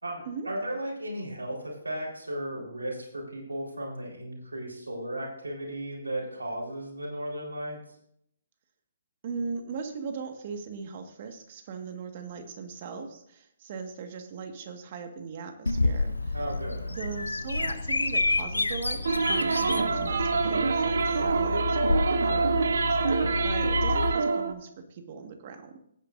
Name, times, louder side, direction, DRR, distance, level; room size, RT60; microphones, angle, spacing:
voice 1, 0.0-7.8 16.3-16.9, right 1 dB, 85° right, -3 dB, 4.0 m, -35 dB
voice 2, 9.2-16.3 16.9-25.8, right 5 dB, 45° right, 6 dB, 1.6 m, -39 dB
Bird vocalization bird call bird song, 15.7-24.1, left 3 dB, 90° left, 0.6 m, -29 dB
sound 1, 19.0-24.5, right 4 dB, 70° right, 1.0 m, -26 dB
17.5 x 8.9 x 2.6 m, 0.72 s
figure-of-eight pair, 135°, 0 cm